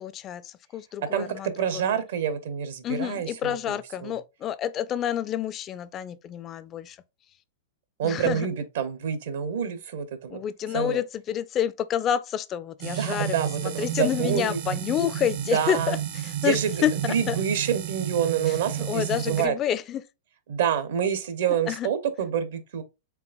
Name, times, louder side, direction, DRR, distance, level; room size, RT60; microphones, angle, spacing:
voice 1, 0.0-1.5 2.8-7.0 8.0-8.5 10.3-13.4 13.6-16.0 16.2-16.9 17.3-17.4 18.5-18.6 18.9-20.0 21.7-21.9, left 10 dB, 30° left, 0.3 m, -28 dB
voice 2, 1.1-4.1 8.0-10.4 10.7-11.0 12.8-14.6 15.5-16.0 16.4-19.5 20.5-22.8, right 8 dB, 70° right, 0.9 m, -27 dB
sound 1, 12.8-19.5, right 11 dB, 45° right, 0.6 m, -32 dB
4.6 x 3.4 x 2.5 m
hypercardioid pair, 130°, 0 cm